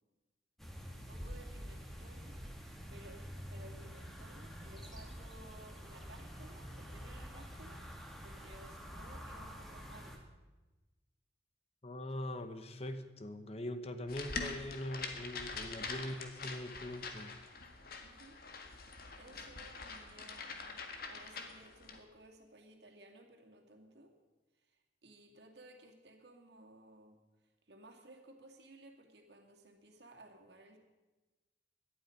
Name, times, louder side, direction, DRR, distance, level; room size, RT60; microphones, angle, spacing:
sound 1, 0.6-10.2, equal, ahead, 1.8 m, -47 dB
voice 1, 0.9-10.3 15.6-16.0 18.0-18.4 18.8-20.8 21.1-24.1 24.5-27.2 27.7-30.8, right 1 dB, 65° right, 2 dB, 2.3 m, -58 dB
voice 2, 11.8-17.4, left 1 dB, 35° left, 9 dB, 0.9 m, -42 dB
sound 2, 14.1-22.0, left 4 dB, 55° left, 1.7 m, -45 dB
18.0 x 12.0 x 5.2 m, 1.2 s
head